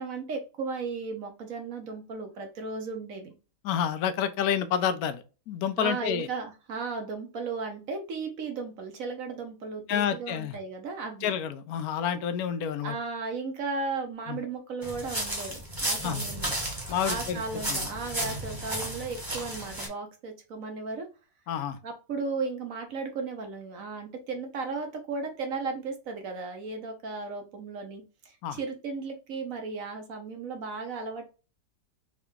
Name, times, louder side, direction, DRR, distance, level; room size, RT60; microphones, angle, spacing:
voice 1, 0.0-3.3 5.8-11.3 12.8-16.6 17.0-21.1 21.8-31.3, right 4 dB, 60° right, 1.2 m, -35 dB
voice 2, 3.6-6.3 9.9-10.5 11.2-13.0 14.3-14.4 16.0-16.2 16.9-17.4 17.7-17.8 21.5-21.8 28.4-28.6, left 8 dB, 70° left, 1.0 m, -29 dB
sound 1, 14.8-19.9, right 1 dB, 15° right, 1.2 m, -33 dB
3.8 x 3.0 x 3.5 m
omnidirectional pair, 1.8 m